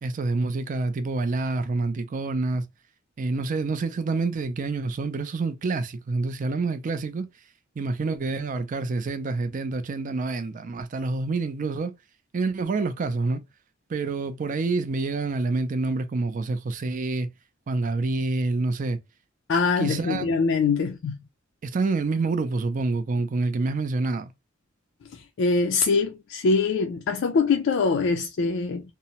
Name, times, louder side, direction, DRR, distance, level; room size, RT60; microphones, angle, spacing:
voice 1, 0.0-2.7 3.2-7.3 7.8-11.9 12.3-13.4 13.9-17.3 17.7-19.0 19.8-20.3 21.6-24.3, right 3 dB, 40° right, 0.4 m, -27 dB
voice 2, 19.5-21.1 25.4-28.8, left 4 dB, 65° left, 0.4 m, -23 dB
2.7 x 2.0 x 2.8 m
head